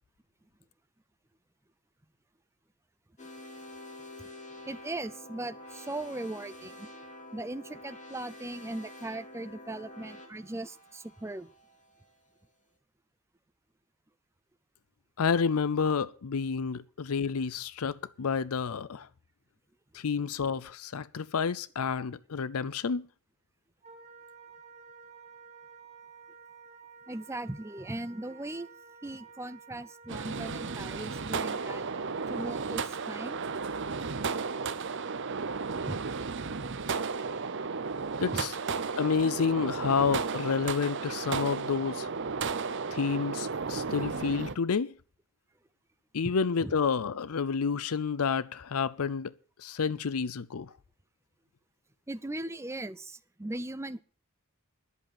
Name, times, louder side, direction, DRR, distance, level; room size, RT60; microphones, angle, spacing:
sound 1, 3.2-12.1, left 1 dB, 35° left, 2.8 m, -48 dB
voice 1, 4.7-6.9 7.3-11.5 27.1-28.7 29.0-31.9 32.3-33.4 35.9-36.0 38.3-38.5 46.6-46.7 52.1-54.0, right 2 dB, 10° right, 0.6 m, -39 dB
voice 2, 15.2-19.1 19.9-23.1 38.2-38.5 39.0-42.1 42.9-44.9 46.1-49.3 49.6-50.7, left 5 dB, 75° left, 0.6 m, -29 dB
Wind instrument woodwind instrument, 23.8-33.7, right 5 dB, 30° right, 2.1 m, -52 dB
sound 2, 30.1-44.5, right 5 dB, 55° right, 0.8 m, -34 dB
11.0 x 7.7 x 8.8 m
head